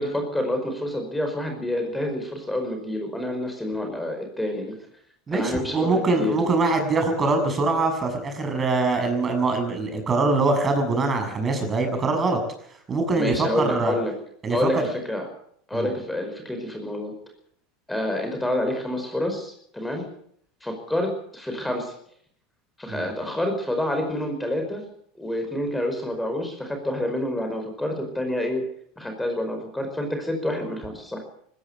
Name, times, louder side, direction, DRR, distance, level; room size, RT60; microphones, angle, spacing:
voice 1, 0.0-4.8 5.3-5.9 6.2-6.4 13.2-14.1 14.5-15.3 15.7-17.1 17.9-20.0 20.6-21.9 22.8-24.9 25.2-28.6 29.0-31.2, left 1 dB, 5° left, 4 dB, 5.1 m, -28 dB
voice 2, 5.3-12.4 12.9-13.9 14.4-14.8 15.7-15.9 22.9-23.1, right 3 dB, 25° right, 5 dB, 6.6 m, -23 dB
20.0 x 16.5 x 8.2 m, 0.66 s
hypercardioid pair, 85°, 0 cm